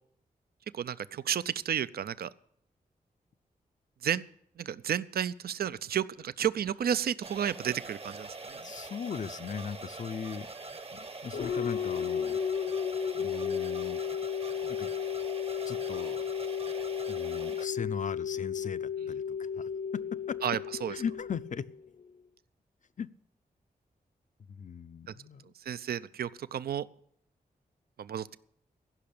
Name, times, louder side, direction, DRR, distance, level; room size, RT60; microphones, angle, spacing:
voice 1, 0.7-2.3 4.0-4.3 4.6-8.6 20.4-20.9 25.1-25.2 25.7-26.9 28.0-28.4, right 9 dB, 75° right, 16 dB, 0.5 m, -32 dB
sound 1, 7.2-17.7, right 3 dB, 40° right, 0.9 m, -43 dB
voice 2, 8.6-10.5 10.9-12.7 13.1-14.0 14.6-14.9 15.7-16.2 17.1-20.4 20.9-21.7 23.0-23.1 24.5-25.5, left 7 dB, 50° left, 15 dB, 0.5 m, -39 dB
sound 2, 11.3-22.0, left 8 dB, 80° left, 1.0 m, -34 dB
15.5 x 5.8 x 8.6 m, 0.67 s
cardioid pair, 55°, 16 cm